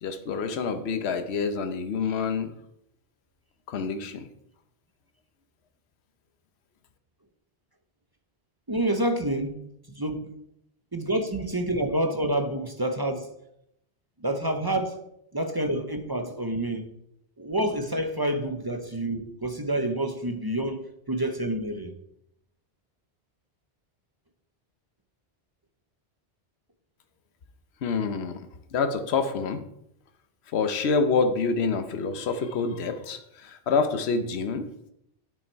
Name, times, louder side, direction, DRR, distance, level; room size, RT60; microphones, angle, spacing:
voice 1, 0.0-2.5 3.7-4.3 27.8-28.4 28.7-29.6 30.5-34.7, left 4 dB, 70° left, 1.1 m, -27 dB
voice 2, 8.7-9.6 9.9-10.3 10.9-13.3 14.2-15.0 15.3-16.9 17.4-21.9, right 1 dB, 25° right, 0.7 m, -28 dB
9.4 x 6.0 x 4.6 m
omnidirectional pair, 1.1 m